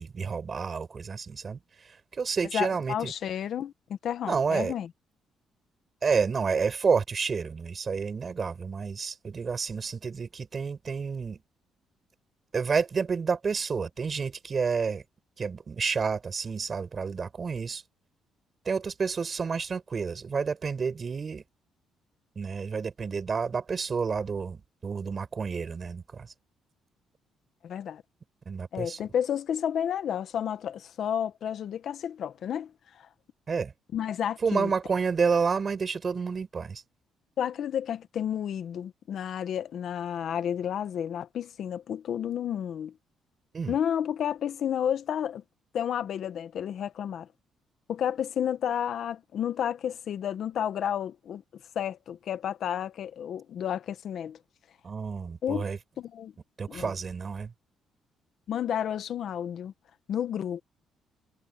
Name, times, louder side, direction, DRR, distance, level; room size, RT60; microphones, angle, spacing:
voice 1, 0.0-1.6 2.2-3.1 4.3-4.7 6.0-11.4 12.5-15.0 15.4-17.8 18.7-21.4 22.4-26.3 28.5-29.0 33.5-33.7 34.4-36.8 43.5-43.7 54.8-55.8 56.6-57.5, right 5 dB, 35° right, 5.9 m, -29 dB
voice 2, 2.5-4.9 27.6-28.0 28.7-33.1 33.9-34.7 37.4-42.9 43.7-45.4 45.7-47.3 47.9-51.4 51.7-54.4 55.4-55.7 56.0-56.3 56.7-56.9 58.5-59.7 60.1-60.6, left 9 dB, 60° left, 1.0 m, -31 dB
cardioid pair, 125°, 0 cm